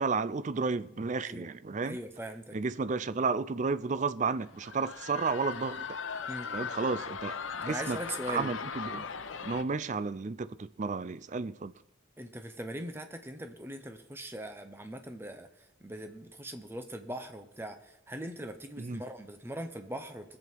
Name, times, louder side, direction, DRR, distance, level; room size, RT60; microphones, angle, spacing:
voice 1, 0.0-2.0 2.5-5.9 6.5-8.0 8.3-9.0 9.4-11.7 18.8-19.0, right 4 dB, 35° right, 0.4 m, -32 dB
voice 2, 1.8-2.6 6.3-6.5 7.6-8.5 12.2-15.5 15.8-20.4, right 1 dB, 10° right, 0.9 m, -41 dB
sound 1, 4.3-9.6, left 6 dB, 75° left, 0.8 m, -39 dB
20.5 x 7.8 x 4.6 m
head